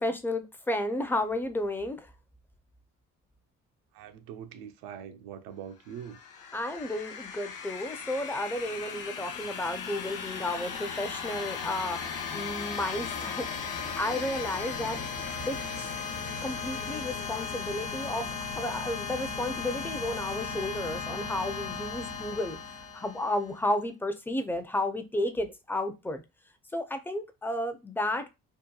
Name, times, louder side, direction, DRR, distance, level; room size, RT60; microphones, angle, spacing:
voice 1, 0.0-2.1 6.5-15.0 15.5-15.9 16.4-18.3 18.6-22.6 22.9-26.2 26.7-28.3, left 1 dB, 5° left, 0.4 m, -32 dB
voice 2, 3.9-6.2, right 9 dB, 80° right, 0.5 m, -43 dB
sound 1, 5.9-23.6, left 5 dB, 70° left, 0.7 m, -36 dB
2.8 x 2.2 x 2.2 m
supercardioid pair, 75°, 33 cm